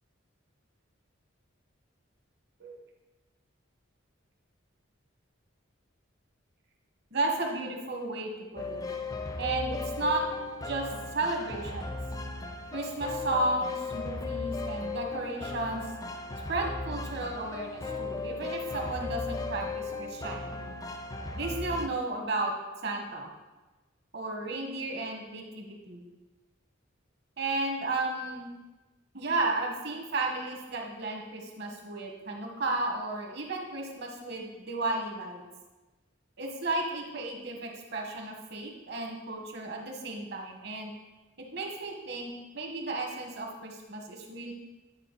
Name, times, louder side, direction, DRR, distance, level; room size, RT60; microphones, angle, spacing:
voice 1, 7.1-8.8 9.4-10.2 10.6-10.9 11.1-12.0 12.7-15.9 16.5-20.7 21.3-22.5 22.8-23.3 24.1-26.0 27.4-28.5 29.1-35.4 36.4-40.9 41.4-44.5, right 2 dB, 55° right, 1 dB, 1.3 m, -33 dB
sound 1, 8.6-21.9, left 3 dB, 15° left, 0.4 m, -36 dB
9.8 x 5.0 x 4.1 m, 1.2 s
head